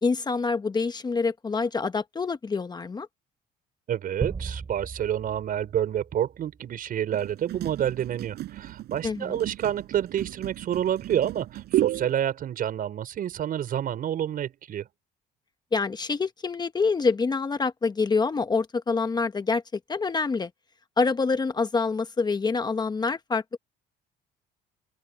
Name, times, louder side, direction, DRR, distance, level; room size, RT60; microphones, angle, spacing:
voice 1, 0.0-3.1 9.0-9.4 15.7-19.6 19.9-20.5 21.0-23.6, left 4 dB, 25° left, 1.0 m, -26 dB
voice 2, 3.9-14.9, right 10 dB, 55° right, 5.8 m, -28 dB
sound 1, 4.2-6.7, right 5 dB, 30° right, 4.1 m, -37 dB
sound 2, 7.1-12.1, right 14 dB, 75° right, 7.2 m, -32 dB
open air
cardioid pair, 110°, 17 cm